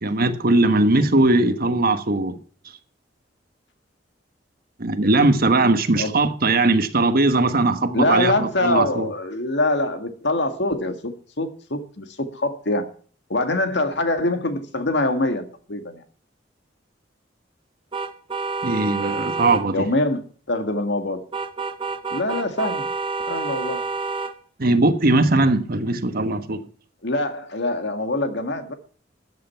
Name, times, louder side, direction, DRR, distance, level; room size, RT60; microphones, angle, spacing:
voice 1, 0.0-2.4 4.8-9.1 18.6-19.9 24.6-26.6, right 2 dB, 55° right, 1.3 m, -19 dB
voice 2, 7.9-12.9 13.3-16.0 19.7-21.3 22.1-22.9 23.3-23.8 27.0-28.7, left 2 dB, 65° left, 1.9 m, -24 dB
sound 1, 17.9-19.6 21.3-24.3, right 4 dB, 30° right, 1.1 m, -28 dB
13.5 x 9.3 x 5.7 m
head